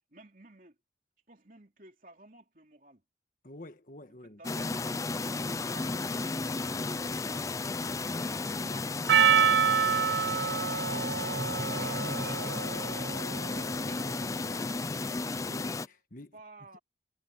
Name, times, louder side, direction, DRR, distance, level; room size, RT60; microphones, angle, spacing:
voice 1, 0.1-0.7 1.3-3.0 4.2-6.0 6.6-9.1 16.3-16.8, right 2 dB, 50° right, 3.3 m, -55 dB
voice 2, 3.4-4.4 9.9-10.2 15.4-16.4, left 1 dB, 45° left, 1.6 m, -49 dB
sound 1, 4.4-15.9, left 3 dB, 20° left, 0.3 m, -33 dB
Percussion, 9.1-13.7, right 7 dB, 75° right, 0.4 m, -27 dB
head